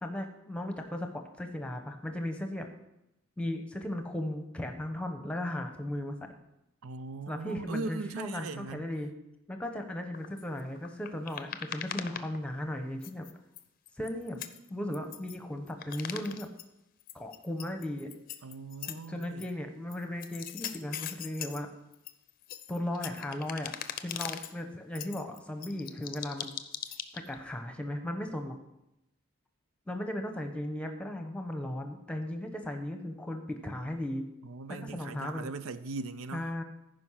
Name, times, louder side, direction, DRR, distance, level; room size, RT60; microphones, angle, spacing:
voice 1, 0.0-2.7 3.4-6.3 7.3-9.1 9.5-13.3 14.0-14.4 14.7-16.5 17.1-18.1 18.9-21.7 22.7-23.7 24.0-26.5 27.1-28.6 29.9-34.2 34.7-35.5 36.3-36.6, left 1 dB, 5° left, 0.9 m, -36 dB
voice 2, 6.8-8.9 18.4-19.5 34.4-36.5, right 3 dB, 90° right, 0.5 m, -39 dB
sound 1, 10.1-12.8 13.0-15.4 15.7-16.6 17.0-19.5 19.9-21.6 21.9-24.5 24.9-27.3, left 9 dB, 40° left, 0.6 m, -41 dB
14.5 x 5.3 x 5.7 m
head